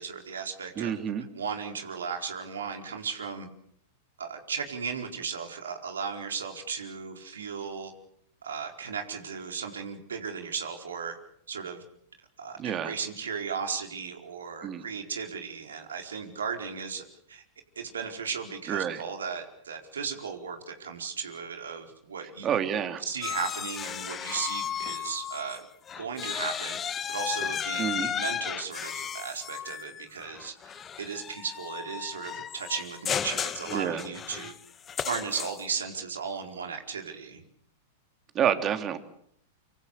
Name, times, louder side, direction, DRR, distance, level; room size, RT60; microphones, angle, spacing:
voice 1, 0.0-1.0 1.3-3.5 4.2-7.9 8.4-11.2 11.5-11.8 12.4-17.4 17.8-22.6 23.1-25.7 26.0-26.8 27.1-34.5 35.0-37.4, right 6 dB, 80° right, 4 dB, 4.6 m, -36 dB
voice 2, 0.8-1.2 12.6-12.9 14.6-14.8 18.7-19.0 22.4-23.0 27.8-28.1 33.7-34.1 38.3-39.0, right 9 dB, 30° right, 8 dB, 3.3 m, -28 dB
sound 1, 23.2-25.6 25.9-35.8, left 8 dB, 25° left, 1.4 m, -34 dB
26.0 x 25.5 x 6.8 m, 0.69 s
hypercardioid pair, 100°, 0 cm